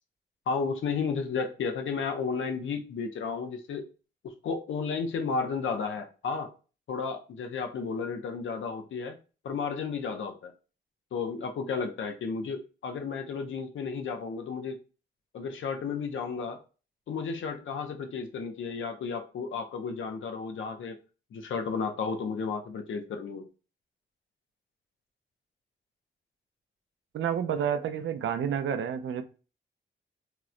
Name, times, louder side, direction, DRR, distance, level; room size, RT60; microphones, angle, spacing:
voice 1, 0.5-3.8 4.4-6.5 6.9-9.2 9.4-10.5 11.1-14.8 15.3-16.6 17.1-21.0 21.3-23.5, left 5 dB, 90° left, 0.5 m, -33 dB
voice 2, 27.1-29.2, right 8 dB, 90° right, 0.4 m, -29 dB
2.9 x 2.0 x 3.6 m
wide cardioid pair, 125°, 20 cm